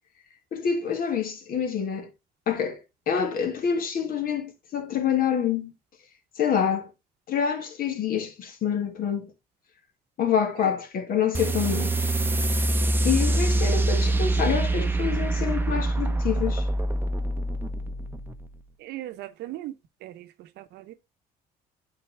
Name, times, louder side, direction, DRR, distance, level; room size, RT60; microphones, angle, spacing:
voice 1, 0.5-2.1 2.5-2.8 3.1-5.7 6.4-6.9 7.3-9.3 10.2-11.9 13.0-16.7, left 7 dB, 60° left, 1.6 m, -26 dB
sound 1, 11.3-18.5, right 2 dB, 10° right, 0.7 m, -25 dB
voice 2, 18.8-19.7 20.0-20.2 20.6-20.9, right 15 dB, 80° right, 0.8 m, -38 dB
9.7 x 4.1 x 3.2 m
cardioid pair, 110°, 17 cm